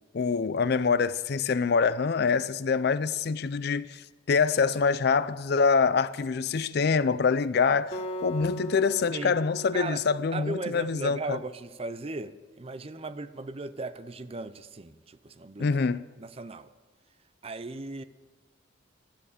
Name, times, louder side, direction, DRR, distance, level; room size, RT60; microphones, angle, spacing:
voice 1, 0.1-4.0 4.3-11.4 15.6-16.0, left 5 dB, 55° left, 0.4 m, -25 dB
Acoustic guitar, 7.9-11.2, right 2 dB, 35° left, 1.3 m, -39 dB
voice 2, 10.3-15.7 16.2-16.7 17.4-18.0, right 2 dB, 30° right, 0.6 m, -37 dB
13.0 x 8.9 x 8.3 m
head